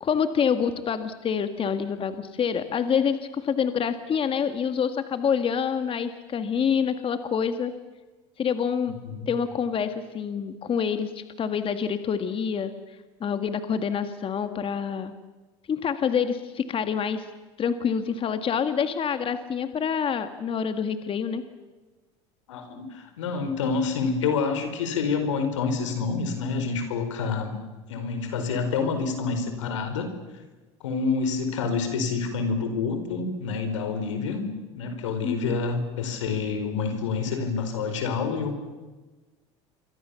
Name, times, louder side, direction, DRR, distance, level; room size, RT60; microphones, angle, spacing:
voice 1, 0.0-7.7 8.4-8.9 9.3-15.1 15.7-17.3 17.6-21.4 35.2-35.6, left 7 dB, 35° left, 9 dB, 1.9 m, -27 dB
voice 2, 22.5-27.6 27.9-30.1 30.8-34.5 34.8-38.5, left 5 dB, 90° left, 8 dB, 4.6 m, -27 dB
28.0 x 24.0 x 7.1 m, 1.2 s
hypercardioid pair, 90°, 15 cm